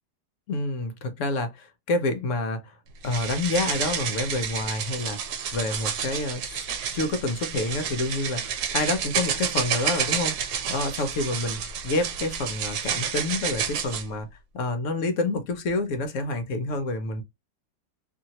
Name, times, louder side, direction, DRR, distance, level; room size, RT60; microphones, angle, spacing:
voice 1, 0.5-2.7 3.0-6.6 6.9-14.3 14.5-17.2, left 2 dB, 65° left, 0.8 m, -28 dB
sound 1, 3.0-14.1, right 8 dB, 80° right, 1.2 m, -30 dB
2.8 x 2.8 x 2.7 m
omnidirectional pair, 1.7 m